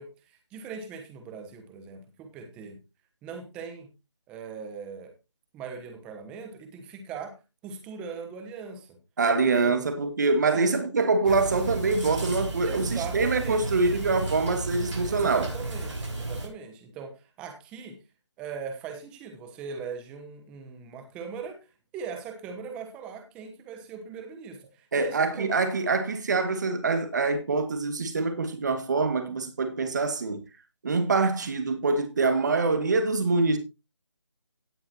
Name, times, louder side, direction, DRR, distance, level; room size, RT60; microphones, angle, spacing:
voice 1, 0.0-2.8 3.2-3.9 4.3-5.1 5.5-7.4 7.6-9.0 9.6-9.8 10.4-10.7 12.6-13.8 15.1-18.0 18.4-21.7 21.9-25.5, right 6 dB, 5° right, 1.2 m, -40 dB
voice 2, 9.2-15.5 24.9-30.4 30.8-33.6, right 3 dB, 40° right, 2.1 m, -25 dB
sound 1, 11.2-16.5, right 2 dB, 80° right, 5.9 m, -33 dB
17.0 x 7.0 x 3.0 m
figure-of-eight pair, 170°, 15 cm